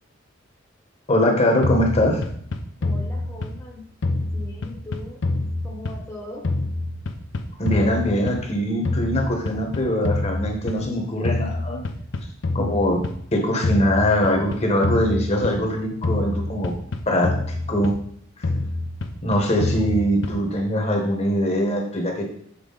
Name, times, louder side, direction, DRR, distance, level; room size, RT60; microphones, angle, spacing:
voice 1, 1.1-2.2 7.6-11.8 12.5-13.0 13.3-16.7 17.1-18.0 19.2-22.2, equal, 35° left, 2 dB, 1.2 m, -22 dB
sound 1, 1.6-3.7 4.0-6.2 6.4-8.6 8.8-10.9 11.2-13.2 13.6-15.7 16.0-18.1 18.4-20.6, left 2 dB, 65° left, 0.6 m, -27 dB
voice 2, 2.8-3.8 4.3-5.2 5.6-6.4 19.8-20.0, left 2 dB, 15° left, -2 dB, 1.0 m, -39 dB
7.1 x 4.6 x 3.9 m, 0.65 s
head